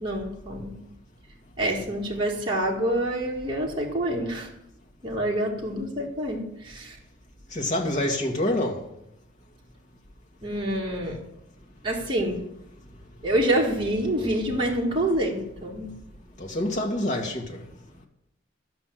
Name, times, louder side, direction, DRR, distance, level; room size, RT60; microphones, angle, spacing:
voice 1, 0.0-0.7 1.6-4.5 5.0-7.0 10.4-11.2 11.8-12.4 13.2-15.9, right 1 dB, 25° right, 1.8 m, -27 dB
voice 2, 7.5-8.8 16.4-17.6, left 1 dB, 40° left, 1.8 m, -26 dB
13.0 x 5.8 x 7.6 m
head